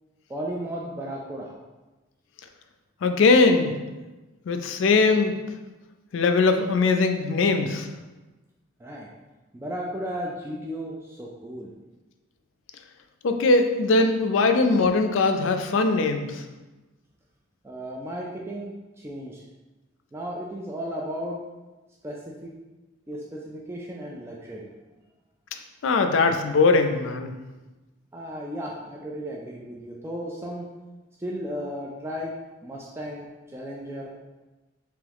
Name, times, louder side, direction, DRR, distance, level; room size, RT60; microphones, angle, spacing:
voice 1, 0.3-1.6 8.8-9.1 9.5-11.7 17.6-19.4 20.1-21.4 22.0-22.5 23.1-24.7 28.1-30.7 31.2-32.3 32.6-34.1, equal, 15° right, -3 dB, 0.3 m, -35 dB
voice 2, 3.0-3.7 4.5-5.3 6.1-7.9 13.2-16.4 25.8-27.3, left 3 dB, 75° left, 6 dB, 0.4 m, -20 dB
3.5 x 3.0 x 3.4 m, 1.1 s
head